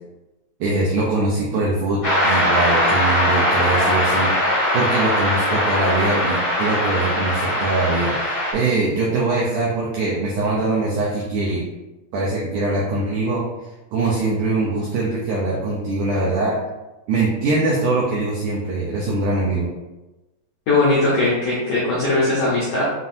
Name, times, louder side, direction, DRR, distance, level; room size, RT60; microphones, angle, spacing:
voice 1, 0.6-4.3 4.7-11.6 12.1-13.4 13.9-16.6 17.1-19.7, right 2 dB, 80° right, -5 dB, 1.8 m, -22 dB
sound 1, 2.0-8.5, left 1 dB, 50° left, 1.1 m, -20 dB
voice 2, 20.7-22.8, left 2 dB, 80° left, -8 dB, 1.6 m, -19 dB
7.4 x 2.7 x 2.6 m, 1.1 s
omnidirectional pair, 4.5 m